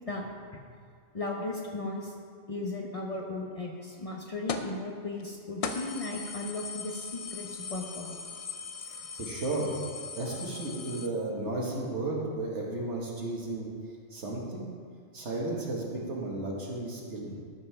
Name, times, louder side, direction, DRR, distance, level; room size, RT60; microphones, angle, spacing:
voice 1, 1.1-2.2 2.5-8.3, left 2 dB, 35° left, 0 dB, 0.8 m, -36 dB
sound 1, 4.5-4.8 5.2-5.3 5.6-11.1, left 5 dB, 50° left, 0.4 m, -39 dB
voice 2, 8.9-9.8 10.1-13.7 14.1-14.7 15.1-17.3, right 2 dB, 70° right, -2 dB, 1.9 m, -34 dB
12.5 x 5.6 x 5.7 m, 2.1 s
omnidirectional pair, 1.2 m